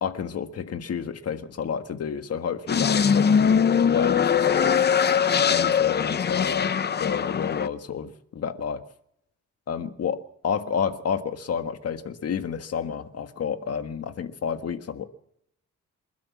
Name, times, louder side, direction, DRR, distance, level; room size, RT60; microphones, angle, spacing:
voice 1, 0.0-4.8 5.5-6.7 7.0-8.8 9.7-15.0, left 7 dB, 50° left, 8 dB, 1.7 m, -30 dB
sound 1, 2.7-7.7, left 7 dB, 35° left, 0.7 m, -21 dB
27.5 x 12.5 x 7.4 m, 0.76 s
cardioid pair, 145°, 31 cm